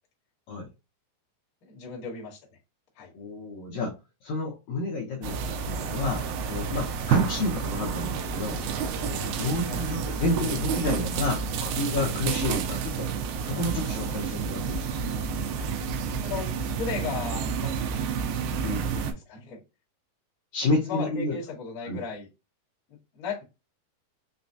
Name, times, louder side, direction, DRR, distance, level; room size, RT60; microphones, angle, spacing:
voice 1, 1.6-2.4 2.9-3.1 9.7-9.8 16.2-18.1 18.7-19.6 20.8-22.3 22.9-23.4, left 5 dB, 45° left, 1.2 m, -36 dB
voice 2, 3.1-3.9 4.2-8.6 9.1-15.0 18.6-18.9 20.5-21.4 21.9-22.0, left 2 dB, 75° left, 1.8 m, -30 dB
sound 1, 5.2-19.1, right 6 dB, 85° right, 2.5 m, -30 dB
6.0 x 2.2 x 2.7 m
omnidirectional pair, 4.4 m